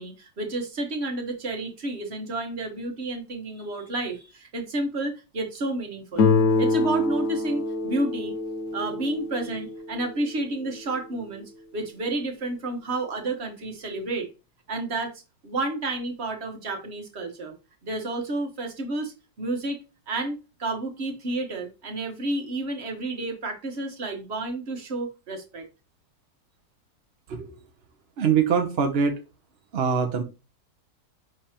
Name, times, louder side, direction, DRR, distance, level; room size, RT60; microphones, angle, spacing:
voice 1, 0.0-6.3 6.6-8.3 8.7-11.4 11.7-14.3 14.7-15.1 15.4-17.5 17.8-19.8 20.1-25.6, right 2 dB, 40° right, 4 dB, 1.3 m, -30 dB
Guitar, 6.2-11.0, left 3 dB, 65° left, 0.8 m, -26 dB
voice 2, 28.2-29.2 29.7-30.2, right 6 dB, 60° right, 5 dB, 0.6 m, -23 dB
9.9 x 3.4 x 2.9 m, 0.30 s
omnidirectional pair, 1.9 m